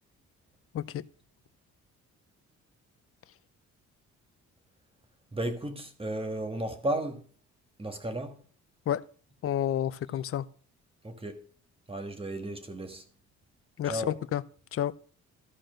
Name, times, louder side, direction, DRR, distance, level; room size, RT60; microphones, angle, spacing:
voice 1, 5.3-7.2 7.8-8.4 11.0-11.4 11.9-13.0 13.8-14.2, right 1 dB, 20° right, 1.5 m, -34 dB
voice 2, 9.4-10.5 13.8-14.4 14.7-14.9, left 11 dB, 50° left, 0.6 m, -30 dB
13.0 x 4.4 x 6.3 m
cardioid pair, 90°, 30 cm